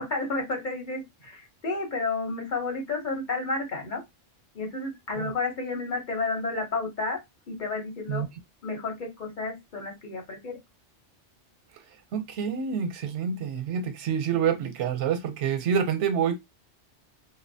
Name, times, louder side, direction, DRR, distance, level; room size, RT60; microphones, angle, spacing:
voice 1, 0.1-4.0 4.5-7.2 7.5-8.2 8.6-10.6, left 3 dB, 45° left, 0.9 m, -31 dB
voice 2, 12.1-16.4, right 7 dB, 85° right, 0.9 m, -27 dB
2.6 x 2.2 x 2.6 m
omnidirectional pair, 1.2 m